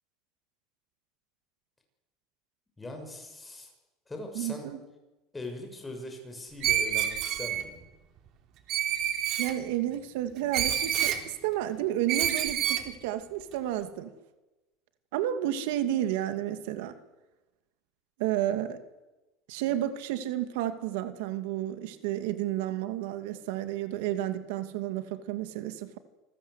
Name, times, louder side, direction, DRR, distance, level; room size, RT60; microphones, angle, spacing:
voice 1, 2.8-3.7 4.1-4.7 5.3-7.8, left 2 dB, 10° left, 6.3 m, -41 dB
voice 2, 4.3-4.8 9.4-14.1 15.1-16.9 18.2-18.8 19.5-26.0, right 12 dB, 85° right, 2.3 m, -31 dB
Screech, 6.6-7.6 8.7-9.5 10.5-11.2 12.1-12.9, right 10 dB, 50° right, 3.2 m, -28 dB
28.0 x 21.0 x 8.2 m
cardioid pair, 145°, 0 cm